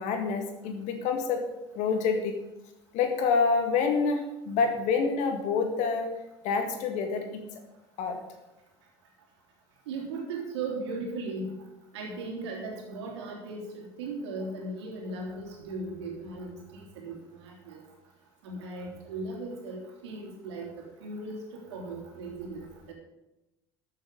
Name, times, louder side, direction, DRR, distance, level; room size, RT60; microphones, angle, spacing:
voice 1, 0.0-1.4 1.7-2.3 2.9-6.1 6.4-7.4 8.0-8.2, left 5 dB, 60° left, 5 dB, 1.9 m, -27 dB
voice 2, 9.9-11.5 11.9-17.8 18.4-21.4 21.7-22.9, right 3 dB, 75° right, -1 dB, 3.4 m, -37 dB
13.5 x 7.4 x 5.4 m, 0.97 s
hypercardioid pair, 65°, 14 cm